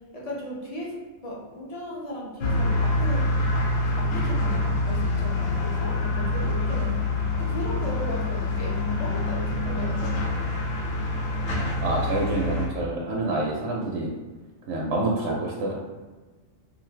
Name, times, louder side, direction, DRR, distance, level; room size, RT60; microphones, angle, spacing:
voice 1, 0.1-1.0 1.2-3.7 4.0-10.4, left 1 dB, 35° left, -5 dB, 0.6 m, -36 dB
sound 1, 2.4-12.7, left 2 dB, 85° left, 1.0 m, -26 dB
voice 2, 11.8-14.1 14.7-15.7, right 2 dB, 70° right, -3 dB, 0.8 m, -27 dB
2.5 x 2.5 x 3.1 m, 1.2 s
omnidirectional pair, 1.3 m